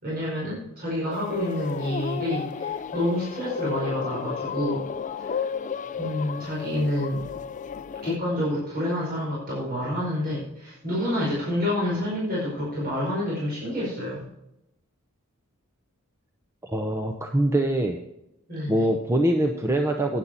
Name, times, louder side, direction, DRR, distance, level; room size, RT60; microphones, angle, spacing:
voice 1, 0.0-4.8 5.2-5.4 6.0-7.3 8.0-14.3 18.5-18.9, left 1 dB, 45° right, -6 dB, 5.0 m, -28 dB
sound 1, 1.1-8.2, left 6 dB, 35° left, 0.4 m, -33 dB
voice 2, 16.6-18.0 18.7-20.2, right 1 dB, 10° right, 4 dB, 0.7 m, -23 dB
11.0 x 9.9 x 4.4 m, 0.88 s
head